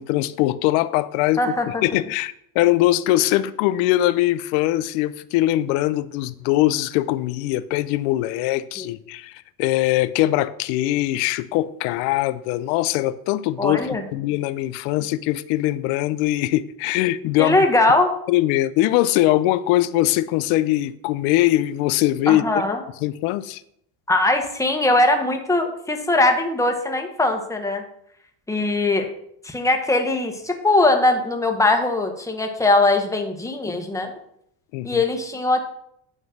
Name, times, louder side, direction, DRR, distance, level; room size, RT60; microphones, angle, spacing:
voice 1, 0.0-17.6 18.3-22.5 23.0-23.6 34.7-35.0, left 15 dB, 90° left, 0.6 m, -21 dB
voice 2, 1.4-1.7 8.8-8.9 13.6-14.0 17.4-18.1 22.3-22.8 24.1-27.8 28.5-29.1 29.4-34.1 34.8-35.6, left 2 dB, 5° left, 1.2 m, -20 dB
9.3 x 3.2 x 6.4 m
cardioid pair, 105°, 50 cm